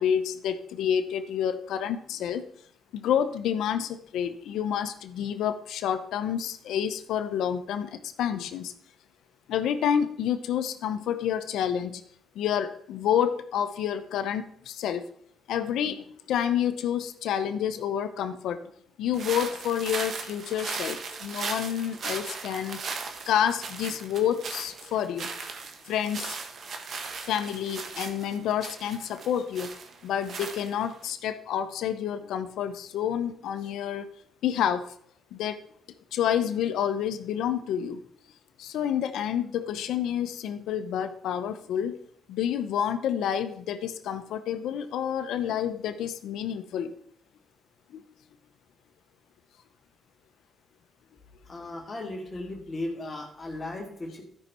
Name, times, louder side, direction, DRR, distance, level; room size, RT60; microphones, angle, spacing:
voice 1, 0.0-2.4 2.9-8.7 9.5-12.0 12.3-15.0 15.5-18.6 19.0-22.8 23.3-25.3 25.9-26.4 27.2-29.7 30.0-34.1 34.4-34.8 35.3-35.6 36.1-38.0 38.6-42.0 42.3-46.9 47.9-48.0, left 9 dB, 80° left, 10 dB, 0.7 m, -29 dB
sound 1, 19.1-31.1, right 5 dB, 60° right, 1.3 m, -38 dB
voice 2, 51.5-54.2, left 2 dB, 30° left, 1 dB, 2.5 m, -36 dB
13.5 x 5.6 x 4.3 m, 0.65 s
cardioid pair, 90°, 0 cm